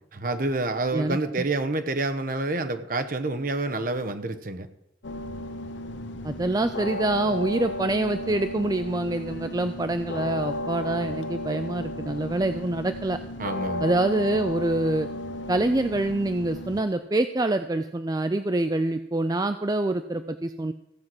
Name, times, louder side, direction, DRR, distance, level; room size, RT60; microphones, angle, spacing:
voice 1, 0.2-4.7 13.4-13.9, right 2 dB, 45° right, 9 dB, 1.0 m, -28 dB
voice 2, 0.9-1.4 6.2-13.2 13.8-15.1 15.5-20.7, right 2 dB, 20° right, 9 dB, 0.4 m, -26 dB
sound 1, 5.0-16.8, left 1 dB, 70° left, 0.9 m, -34 dB
15.5 x 5.8 x 7.8 m, 0.86 s
head